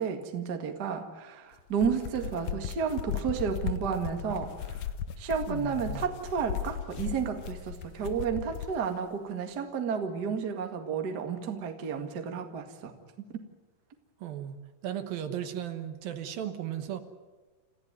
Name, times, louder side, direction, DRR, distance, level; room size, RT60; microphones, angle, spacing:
voice 1, 0.0-4.9 5.2-12.9 13.3-13.4, right 6 dB, 35° right, 5 dB, 1.8 m, -32 dB
sound 1, 1.6-8.8, left 9 dB, 70° left, 1.9 m, -37 dB
voice 2, 5.5-6.1 14.2-14.6 14.8-17.0, right 10 dB, 75° right, 9 dB, 2.9 m, -36 dB
28.5 x 15.0 x 9.4 m, 1.2 s
omnidirectional pair, 4.4 m